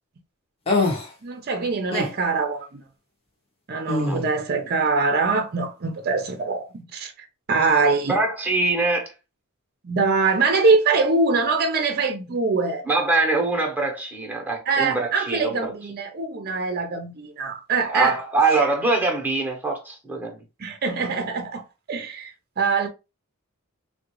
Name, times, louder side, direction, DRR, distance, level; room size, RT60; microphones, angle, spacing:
sound 1, 0.7-1.1 1.9-2.1 3.9-4.3, left 2 dB, 25° left, 0.8 m, -23 dB
voice 1, 1.2-2.8 3.7-7.1 7.5-8.2 9.8-12.8 14.7-18.2 20.6-21.6 21.9-22.9, right 4 dB, 45° right, 0.6 m, -23 dB
voice 2, 8.1-9.1 12.9-15.6 17.9-20.4, right 3 dB, 10° right, 0.8 m, -23 dB
3.6 x 2.2 x 2.9 m
head